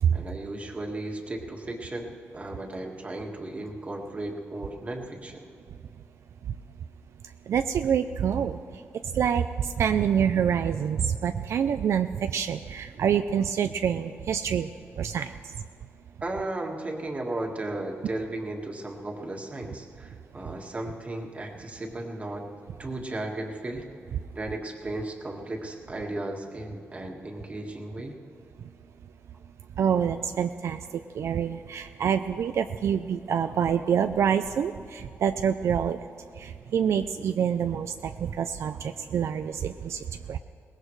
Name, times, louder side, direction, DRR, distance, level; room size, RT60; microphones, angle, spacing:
voice 1, 0.1-5.4 16.2-22.4 22.8-23.9 24.3-28.2, right 2 dB, 30° right, 1 dB, 1.7 m, -35 dB
voice 2, 7.5-8.8 9.1-14.7 15.0-15.5 20.4-20.5 29.8-40.4, right 8 dB, 75° right, 9 dB, 0.4 m, -27 dB
22.5 x 19.0 x 3.2 m, 2.4 s
wide cardioid pair, 120°, 5 cm